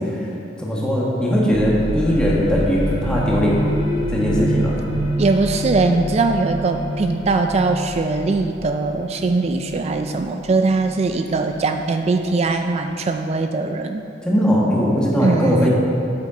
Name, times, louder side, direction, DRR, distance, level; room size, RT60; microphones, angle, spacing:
voice 1, 0.6-3.6 4.1-4.8 14.2-15.7, equal, 5° left, -5 dB, 1.5 m, -19 dB
sound 1, 1.5-12.9, equal, 30° left, 1.1 m, -27 dB
voice 2, 5.2-14.1 15.2-15.7, right 3 dB, 35° right, 6 dB, 0.3 m, -21 dB
9.0 x 8.6 x 3.8 m, 2.7 s
head